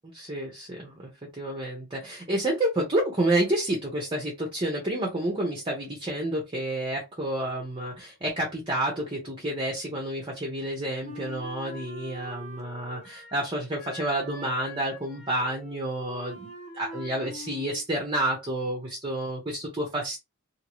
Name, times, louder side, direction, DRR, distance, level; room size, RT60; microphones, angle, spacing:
voice 1, 0.1-20.2, right 1 dB, 25° right, 0.9 m, -29 dB
Wind instrument woodwind instrument, 11.0-13.5 13.8-17.9, left 1 dB, 30° left, 1.0 m, -44 dB
2.8 x 2.8 x 3.0 m
head